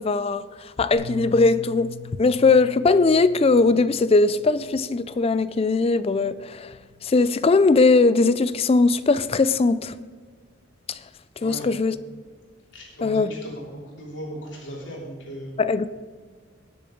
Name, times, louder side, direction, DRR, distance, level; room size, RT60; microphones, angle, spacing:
voice 1, 0.0-6.7 7.0-10.0 10.9-11.0 11.4-11.9 13.0-13.3 15.6-15.9, left 3 dB, 30° left, 0.4 m, -20 dB
Bass guitar, 0.9-5.4 6.2-7.2, left 4 dB, 40° right, 3.6 m, -42 dB
voice 2, 12.7-15.5, equal, 65° left, 3.3 m, -37 dB
20.0 x 6.8 x 3.9 m
head